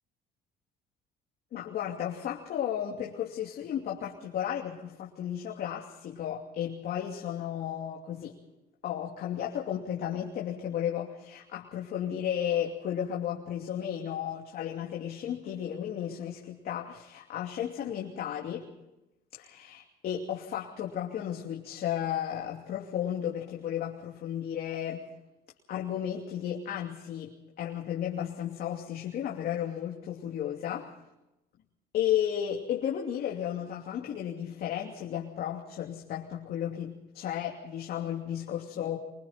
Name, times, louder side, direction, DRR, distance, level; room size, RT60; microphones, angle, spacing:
voice 1, 1.5-8.4 8.8-18.7 19.3-25.1 25.7-30.9 31.9-39.0, left 10 dB, 65° left, -1 dB, 2.8 m, -34 dB
25.0 x 24.0 x 4.4 m, 0.94 s
cardioid pair, 110°, 17 cm